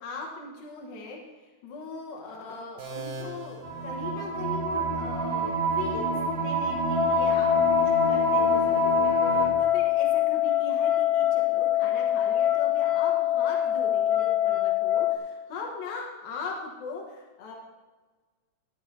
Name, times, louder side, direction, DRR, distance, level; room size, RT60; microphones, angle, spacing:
voice 1, 0.0-17.6, left 4 dB, 90° left, -1 dB, 3.1 m, -40 dB
sound 1, 2.8-4.7, right 2 dB, 75° right, 3.9 m, -41 dB
sound 2, 3.6-9.5, right 4 dB, 55° right, 2.8 m, -28 dB
sound 3, 7.0-15.2, left 12 dB, 75° left, 2.3 m, -24 dB
13.5 x 11.0 x 2.7 m, 1.3 s
omnidirectional pair, 4.0 m